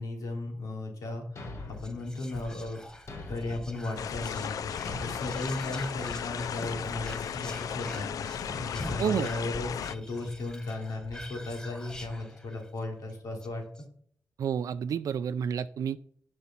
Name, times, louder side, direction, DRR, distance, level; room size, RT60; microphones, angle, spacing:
voice 1, 0.0-1.5 1.8-2.8 3.3-8.3 8.6-13.6, left 2 dB, 90° left, 1 dB, 3.0 m, -36 dB
Thump thud, 1.4-2.0 3.1-3.7 4.9-5.4 6.6-7.0 8.5-8.8, left 2 dB, 50° left, 1.6 m, -41 dB
Whispering, 1.7-12.8 13.1-13.2 13.4-13.8, left 1 dB, 10° left, 1.0 m, -44 dB
sound 1, 4.0-9.9, left 8 dB, 70° left, 0.4 m, -36 dB
voice 2, 9.0-9.3 14.4-16.0, right 8 dB, 70° right, 12 dB, 0.4 m, -29 dB
11.0 x 5.4 x 5.9 m, 0.62 s
wide cardioid pair, 165°, 6 cm